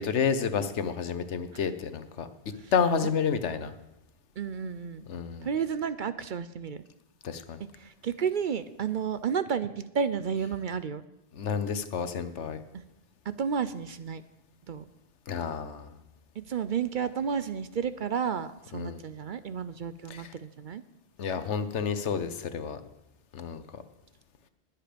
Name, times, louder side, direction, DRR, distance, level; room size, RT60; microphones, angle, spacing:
voice 1, 0.0-2.3 2.7-3.7 5.1-5.5 7.2-7.6 11.3-12.6 15.3-15.9 18.7-19.0 20.1-20.3 21.2-22.8 23.3-23.6, left 6 dB, 90° left, 11 dB, 1.2 m, -30 dB
voice 2, 4.4-5.1 5.4-6.8 7.6-11.0 12.7-12.8 13.3-14.2 14.7-14.8 16.4-20.8, right 7 dB, 55° right, 13 dB, 0.6 m, -32 dB
20.5 x 7.6 x 5.1 m, 0.94 s
omnidirectional pair, 1.2 m